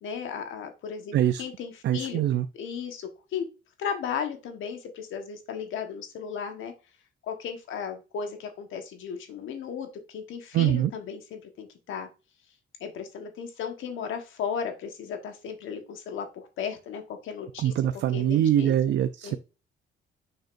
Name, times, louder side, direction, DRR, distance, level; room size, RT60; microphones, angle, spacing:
voice 1, 0.0-2.2 2.5-3.5 3.8-6.7 7.2-12.1 12.8-17.7 18.1-18.7 19.2-19.4, left 7 dB, 80° left, 6 dB, 1.3 m, -35 dB
voice 2, 1.1-1.4 1.8-2.5 10.5-10.9 17.6-19.4, right 11 dB, 65° right, 11 dB, 0.5 m, -23 dB
6.5 x 6.4 x 2.6 m, 0.31 s
cardioid pair, 90°, 20 cm